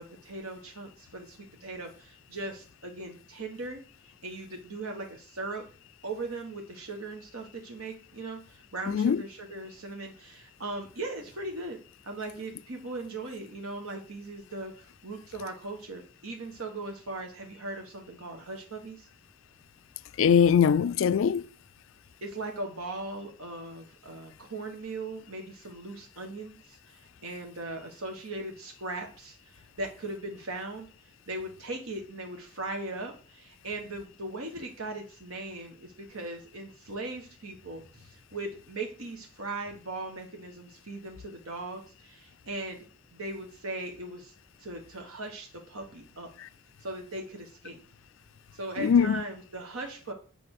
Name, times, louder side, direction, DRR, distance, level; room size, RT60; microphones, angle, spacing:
voice 1, 0.0-3.8 4.2-5.6 6.0-11.8 12.0-19.1 22.2-42.8 43.1-44.3 44.6-46.3 46.8-47.8 48.5-50.1, right 2 dB, 80° right, 1.5 m, -39 dB
voice 2, 8.9-9.2 20.2-21.4 48.8-49.2, left 7 dB, 65° left, 0.3 m, -22 dB
8.6 x 5.2 x 6.5 m
head